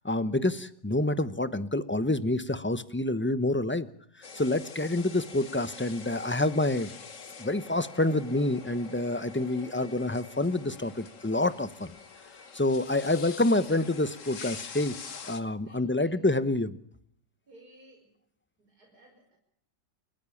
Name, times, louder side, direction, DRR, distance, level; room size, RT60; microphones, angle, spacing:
voice 1, 0.0-3.9 4.3-6.9 7.4-11.9 12.5-15.0 15.3-16.8, left 2 dB, 10° left, 13 dB, 0.6 m, -27 dB
sound 1, 4.2-15.4, left 5 dB, 50° left, 1.7 m, -45 dB
voice 2, 15.6-16.5 17.5-18.1 18.6-19.4, right 1 dB, 65° right, 1 dB, 6.1 m, -57 dB
29.5 x 14.0 x 7.2 m, 0.68 s
omnidirectional pair, 1.8 m